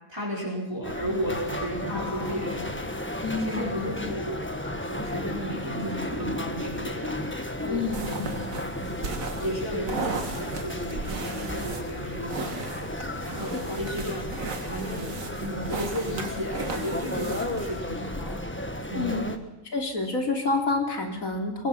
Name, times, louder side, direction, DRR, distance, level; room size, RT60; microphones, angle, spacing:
voice 1, 0.1-2.9 3.4-7.1 7.6-8.3 8.8-8.9 9.4-12.8 13.2-18.4 18.9-19.3, equal, 15° right, -5 dB, 4.8 m, -34 dB
sound 1, 0.8-19.4, left 1 dB, 10° left, 1.4 m, -34 dB
voice 2, 1.9-2.4 3.2-4.1 7.7-8.3 13.5-13.8 17.1-17.5 18.9-19.3 19.6-21.7, left 3 dB, 80° left, 3 dB, 3.5 m, -29 dB
sound 2, 7.9-17.8, right 4 dB, 75° right, 2.1 m, -36 dB
23.5 x 22.5 x 6.1 m, 0.96 s
omnidirectional pair, 1.4 m